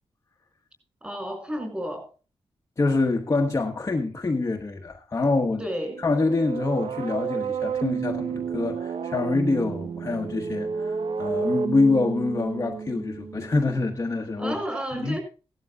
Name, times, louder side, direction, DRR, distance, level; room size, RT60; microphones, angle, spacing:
voice 1, 1.0-2.1 5.6-6.0 14.4-15.2, equal, 15° right, 6.3 m, -31 dB
voice 2, 2.8-5.6 6.0-14.5 14.9-15.2, left 3 dB, 30° left, 1.3 m, -25 dB
sound 1, 5.9-13.7, right 6 dB, 85° right, 0.7 m, -31 dB
18.0 x 12.5 x 2.3 m
wide cardioid pair, 180°, 10 cm